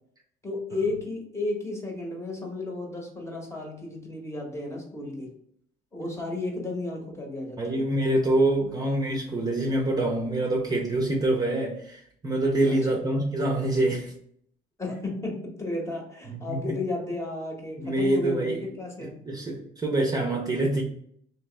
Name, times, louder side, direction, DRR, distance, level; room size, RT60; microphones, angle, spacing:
voice 1, 0.4-5.3 5.9-7.9 8.6-8.8 12.7-13.2 14.8-19.2, left 2 dB, 15° left, 1.0 m, -33 dB
voice 2, 7.6-14.1 16.3-16.6 17.8-18.6 19.2-20.8, right 1 dB, 20° right, 0.7 m, -25 dB
3.1 x 2.9 x 3.3 m
cardioid pair, 110°, 17 cm